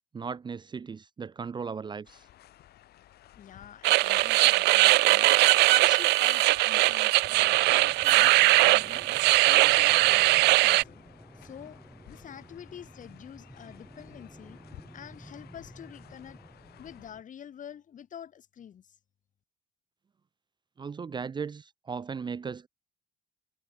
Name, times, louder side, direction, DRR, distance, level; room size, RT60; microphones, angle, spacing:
voice 1, 0.1-2.3 20.8-22.7, right 5 dB, 25° right, 0.7 m, -37 dB
sound 1, 2.0-17.1, left 13 dB, 70° left, 5.3 m, -55 dB
voice 2, 3.3-5.3 5.8-9.1 9.5-11.0 11.3-11.8 12.1-14.6 14.9-16.4 16.8-19.0, left 9 dB, 50° left, 7.1 m, -47 dB
sound 2, 3.8-10.8, right 20 dB, 85° right, 0.6 m, -21 dB
sound 3, 7.2-17.2, right 1 dB, 5° right, 3.0 m, -51 dB
cardioid pair, 110°, 17 cm